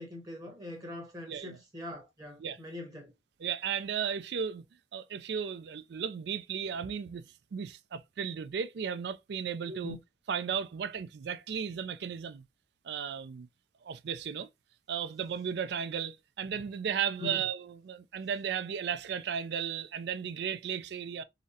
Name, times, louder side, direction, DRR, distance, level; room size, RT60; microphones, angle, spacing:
voice 1, 0.0-3.1 9.7-10.0 17.2-17.4, left 2 dB, 20° right, 0.9 m, -43 dB
voice 2, 1.3-1.6 2.4-2.6 3.4-4.6 4.9-7.2 7.5-10.0 10.3-12.4 12.8-13.5 13.8-14.5 14.9-21.2, right 7 dB, 65° right, 0.3 m, -35 dB
3.8 x 2.0 x 2.6 m
head